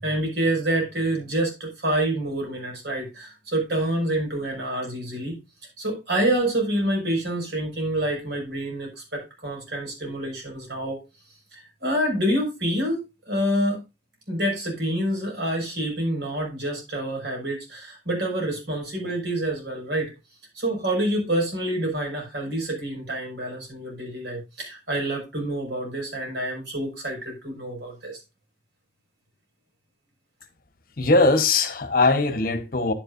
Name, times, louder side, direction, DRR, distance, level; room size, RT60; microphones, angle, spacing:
voice 1, 0.0-5.4 5.8-11.0 11.5-13.8 14.3-20.1 20.5-28.2, right 1 dB, 70° right, 5.6 m, -27 dB
voice 2, 31.0-32.9, left 3 dB, 50° left, 1.1 m, -20 dB
10.0 x 9.6 x 2.6 m
head